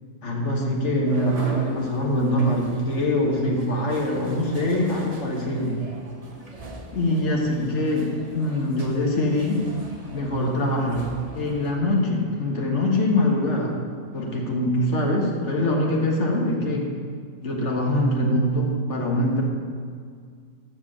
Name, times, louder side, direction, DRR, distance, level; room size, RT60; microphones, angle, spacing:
voice 1, 0.2-5.8 6.9-9.6 10.1-13.7 14.1-16.9 17.4-19.4, left 1 dB, 65° left, 0 dB, 1.7 m, -23 dB
sound 1, 1.0-11.7, right 2 dB, 30° right, 0.9 m, -40 dB
7.2 x 6.0 x 7.3 m, 2.1 s
omnidirectional pair, 1.3 m